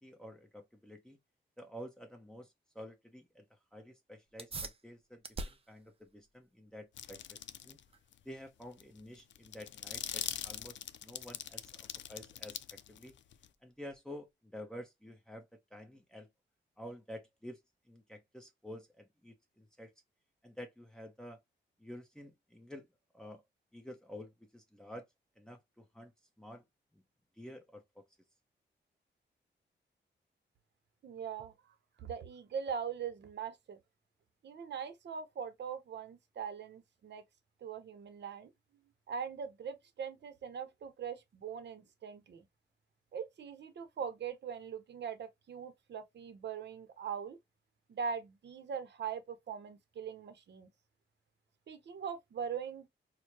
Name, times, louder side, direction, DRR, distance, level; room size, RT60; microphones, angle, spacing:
voice 1, 0.0-1.2 1.6-7.4 7.6-7.8 8.2-13.1 13.6-16.3 16.8-17.6 17.9-19.9 20.4-21.4 21.8-22.9 23.1-23.4 23.7-25.0 25.4-26.1 26.4-26.6 26.9-27.0 27.4-28.0, equal, 5° left, 0.9 m, -50 dB
sound 1, 4.3-14.3, right 3 dB, 30° right, 0.6 m, -51 dB
sound 2, 7.0-7.8 8.1-8.2 8.6-13.5, left 10 dB, 75° left, 0.4 m, -42 dB
voice 2, 31.0-33.8 34.4-37.2 37.6-38.5 39.1-42.4 43.1-47.4 47.9-50.7 51.7-52.9, right 7 dB, 65° right, 0.8 m, -41 dB
4.5 x 2.2 x 2.9 m
cardioid pair, 105°, 19 cm